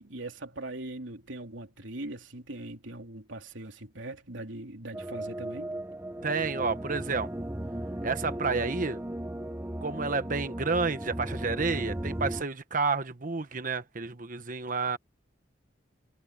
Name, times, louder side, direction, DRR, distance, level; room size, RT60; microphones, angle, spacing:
voice 1, 0.0-5.7, right 2 dB, 85° right, 3.2 m, -41 dB
sound 1, 4.9-12.4, right 1 dB, 10° right, 0.7 m, -36 dB
voice 2, 6.2-7.3 8.0-9.0 9.8-15.0, right 4 dB, 45° right, 1.2 m, -30 dB
head